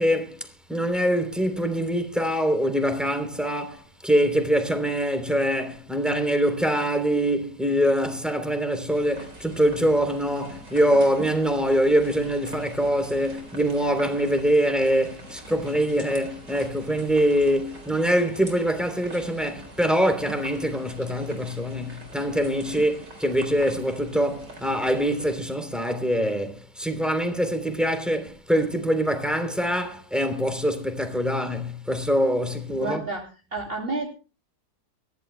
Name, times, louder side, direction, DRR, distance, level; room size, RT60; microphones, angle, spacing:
voice 1, 0.0-33.0, equal, ahead, 3.1 m, -24 dB
sound 1, 8.9-25.4, right 1 dB, 85° right, 5.0 m, -44 dB
voice 2, 32.7-34.1, right 2 dB, 35° right, 3.2 m, -31 dB
24.5 x 15.5 x 2.2 m
omnidirectional pair, 1.8 m